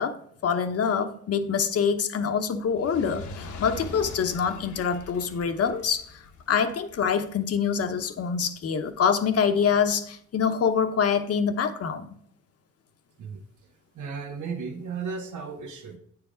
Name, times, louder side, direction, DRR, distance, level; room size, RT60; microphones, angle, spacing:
voice 1, 0.0-12.1, left 6 dB, 50° left, 8 dB, 0.9 m, -25 dB
Fire, 2.6-9.1 9.8-9.9, left 3 dB, 75° left, 1.1 m, -43 dB
voice 2, 13.9-16.0, right 5 dB, 80° right, 5 dB, 1.4 m, -35 dB
8.7 x 4.8 x 5.0 m, 0.64 s
cardioid pair, 90°, 30 cm